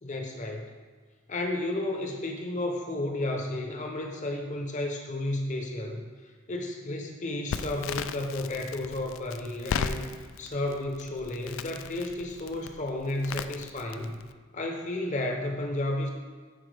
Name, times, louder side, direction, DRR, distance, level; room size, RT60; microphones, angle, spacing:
voice 1, 0.0-0.7 1.3-10.1 10.4-14.3 14.5-16.1, left 1 dB, 35° left, 2 dB, 0.8 m, -32 dB
Crackle, 7.5-14.3, left 6 dB, 70° left, 0.3 m, -37 dB
10.0 x 4.3 x 3.3 m, 1.5 s
head